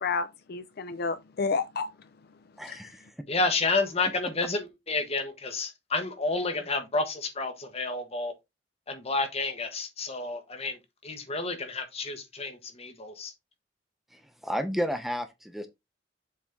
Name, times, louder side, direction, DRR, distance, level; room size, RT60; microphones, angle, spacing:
voice 1, 0.0-1.9 2.7-2.8, left 4 dB, 60° left, 0.5 m, -30 dB
voice 2, 2.6-3.0 14.1-15.7, equal, ahead, 0.7 m, -32 dB
voice 3, 3.3-8.3 8.9-10.8 11.0-13.3, left 3 dB, 35° left, 1.4 m, -30 dB
7.2 x 4.2 x 3.6 m
head